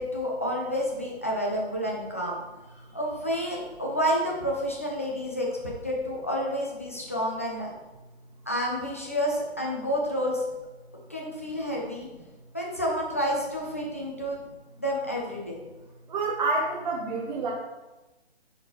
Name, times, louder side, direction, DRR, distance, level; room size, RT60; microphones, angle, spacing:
voice 1, 0.0-2.4 2.9-7.7 8.5-10.4 11.1-12.1 12.5-14.4 14.8-15.6, equal, 15° left, -3 dB, 0.4 m, -29 dB
voice 2, 16.1-17.5, right 3 dB, 40° right, -3 dB, 1.1 m, -28 dB
9.8 x 3.7 x 3.0 m, 1.1 s
hypercardioid pair, 160°, 33 cm